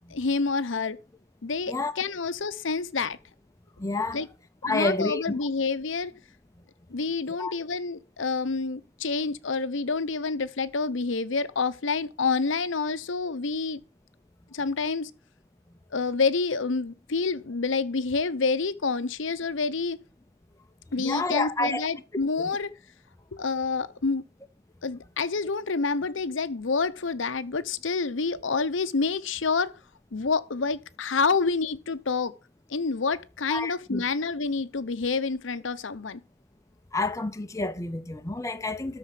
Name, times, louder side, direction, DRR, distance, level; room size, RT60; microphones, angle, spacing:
voice 1, 0.1-1.0 1.4-3.2 4.1-4.3 4.6-6.1 6.9-13.8 14.5-15.1 15.9-20.0 20.9-22.7 23.3-24.2 24.8-29.7 30.1-32.3 32.7-36.2, left 4 dB, 70° left, 0.7 m, -28 dB
voice 2, 3.8-4.2 4.6-5.5 7.3-7.5 21.0-21.9 22.4-22.5 33.5-34.0 36.9-39.0, left 2 dB, 15° left, 0.6 m, -29 dB
13.0 x 4.4 x 7.6 m
head